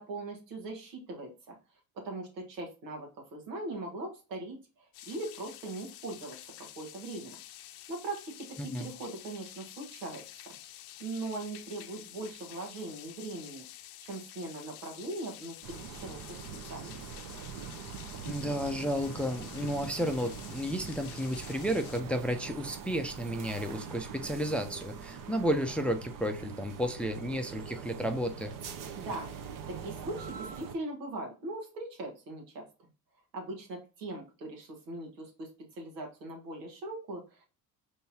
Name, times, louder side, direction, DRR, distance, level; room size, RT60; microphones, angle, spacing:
voice 1, 0.0-1.6 1.9-7.4 7.9-10.5 11.0-13.6 14.0-16.4 16.7-17.0 29.0-29.3 29.7-32.9 33.3-37.5, right 2 dB, 80° right, 1 dB, 1.6 m, -40 dB
sound 1, 4.9-22.0, left 13 dB, 65° left, 0.7 m, -49 dB
sound 2, 15.6-30.7, right 6 dB, 40° right, 0.9 m, -43 dB
voice 2, 18.2-28.5, equal, ahead, 6 dB, 0.5 m, -32 dB
5.4 x 3.4 x 2.8 m, 0.33 s
hypercardioid pair, 65°, 49 cm